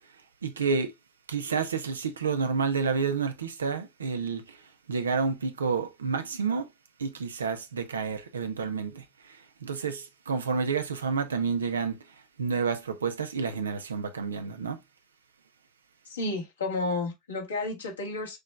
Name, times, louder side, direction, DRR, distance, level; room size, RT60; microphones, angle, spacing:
voice 1, 0.4-0.9 1.3-4.6 4.9-6.7 7.0-9.0 9.6-12.0 12.4-14.8, right 5 dB, 80° right, 0.7 m, -29 dB
voice 2, 16.0-18.4, left 2 dB, 80° left, 1.5 m, -31 dB
6.5 x 3.2 x 2.3 m
figure-of-eight pair, 75°, 0 cm